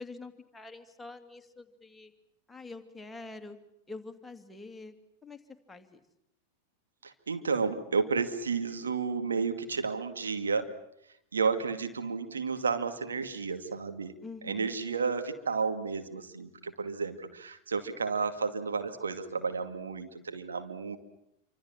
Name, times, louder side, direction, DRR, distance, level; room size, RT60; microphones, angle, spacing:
voice 1, 0.0-2.1 2.5-3.6 3.9-4.9 5.2-5.4 5.7-6.0 14.2-14.7, left 3 dB, 10° left, 5 dB, 2.6 m, -45 dB
voice 2, 7.0-10.7 11.3-14.2 14.4-21.0, right 5 dB, 75° right, 7 dB, 2.4 m, -32 dB
27.5 x 25.5 x 7.6 m, 0.78 s
figure-of-eight pair, 90°, 0 cm